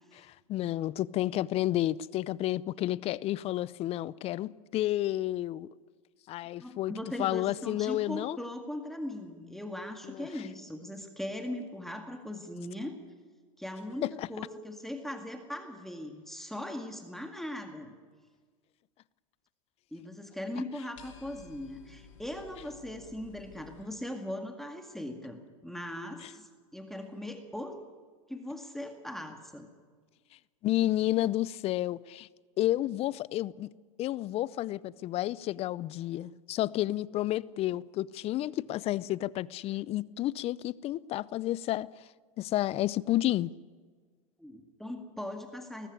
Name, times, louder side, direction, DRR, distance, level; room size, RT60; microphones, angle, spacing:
voice 1, 0.2-5.7 6.3-6.9 7.2-8.4 10.0-10.3 14.0-14.3 26.2-26.3 30.6-32.3 32.6-33.7 34.0-41.9 42.4-43.5, left 14 dB, 35° left, 0.6 m, -31 dB
voice 2, 6.6-12.9 13.6-18.0 19.9-27.8 28.3-29.7 44.4-45.9, left 1 dB, ahead, 2.0 m, -39 dB
sound 1, 21.0-23.8, left 8 dB, 70° left, 6.3 m, -53 dB
20.0 x 14.5 x 9.7 m
hypercardioid pair, 105°, 17 cm